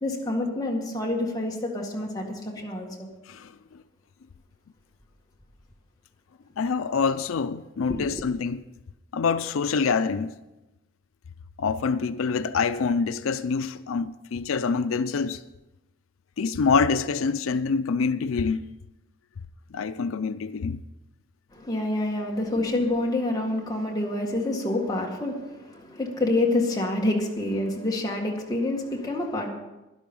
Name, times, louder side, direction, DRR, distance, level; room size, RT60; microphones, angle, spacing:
voice 1, 0.0-3.1 7.9-8.2 21.5-29.5, left 2 dB, 20° left, 1.9 m, -27 dB
voice 2, 6.6-8.6 9.1-10.3 11.6-15.4 16.4-18.6 19.7-20.8, left 5 dB, 90° left, 0.5 m, -26 dB
12.5 x 10.5 x 5.4 m
head